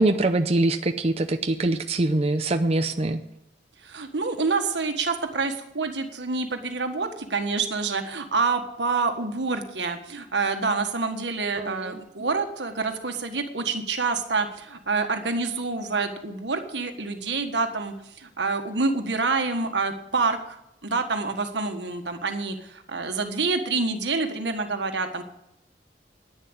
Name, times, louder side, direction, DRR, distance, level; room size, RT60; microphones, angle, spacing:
voice 1, 0.0-3.2 11.6-11.9, right 2 dB, 35° right, 7 dB, 0.6 m, -23 dB
voice 2, 3.8-20.6 20.8-25.2, right 4 dB, 90° right, 6 dB, 1.6 m, -27 dB
10.5 x 9.6 x 8.1 m, 0.83 s
head